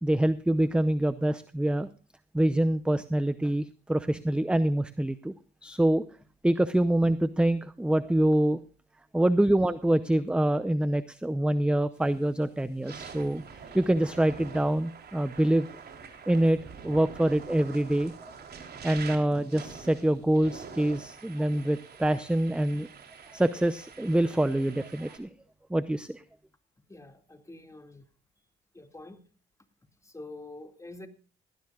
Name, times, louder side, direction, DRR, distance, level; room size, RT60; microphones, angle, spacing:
voice 1, 0.0-1.9 2.3-5.3 5.6-6.0 6.4-8.6 9.1-13.4 13.7-15.7 16.3-16.6 16.8-18.1 18.8-22.9 23.3-25.3 25.7-26.2, right 1 dB, 5° right, 13 dB, 0.7 m, -25 dB
sound 1, 12.0-12.2 12.7-25.2, right 6 dB, 55° right, 3.6 m, -46 dB
voice 2, 26.9-28.1 28.7-29.2 30.0-31.1, left 2 dB, 15° left, 7 dB, 2.2 m, -46 dB
18.5 x 15.5 x 2.4 m, 0.36 s
cardioid pair, 90°, 20 cm